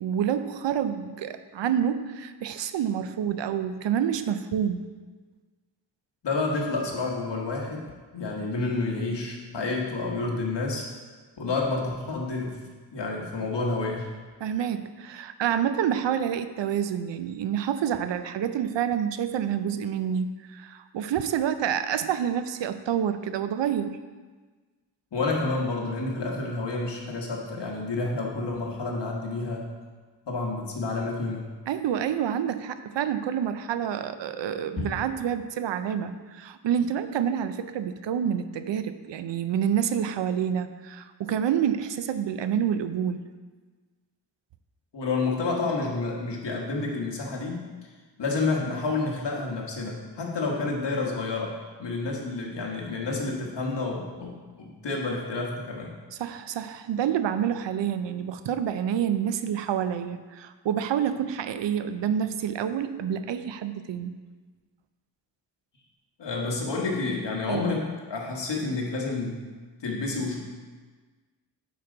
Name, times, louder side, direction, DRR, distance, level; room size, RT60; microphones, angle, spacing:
voice 1, 0.0-4.8 14.4-24.0 31.7-43.2 56.2-64.1 67.5-67.7, right 9 dB, 80° right, 11 dB, 0.6 m, -28 dB
voice 2, 6.2-7.9 8.1-10.9 11.4-12.6 12.9-14.1 25.1-29.7 30.3-31.5 34.8-34.9 44.9-47.7 48.2-56.0 66.2-69.4 69.8-70.4, left 3 dB, 75° left, -1 dB, 1.5 m, -29 dB
8.7 x 5.1 x 3.9 m, 1.4 s
wide cardioid pair, 150°, 43 cm